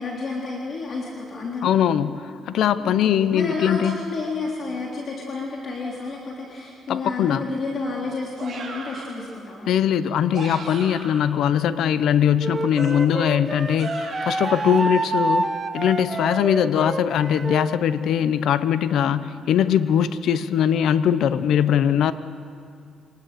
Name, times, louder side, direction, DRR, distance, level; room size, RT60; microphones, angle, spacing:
voice 1, 0.0-1.7 2.8-9.7 19.0-19.1, left 3 dB, 50° left, -2 dB, 3.3 m, -31 dB
voice 2, 1.6-4.0 6.9-7.4 9.7-22.1, left 9 dB, 75° left, 14 dB, 0.8 m, -21 dB
sound 1, 8.4-9.2 10.1-11.3 12.7-14.9, right 3 dB, 50° right, 4.5 m, -38 dB
Wind instrument woodwind instrument, 12.4-17.7, right 2 dB, 25° right, 1.2 m, -27 dB
25.0 x 19.5 x 6.8 m, 2.4 s
cardioid pair, 90°, 0 cm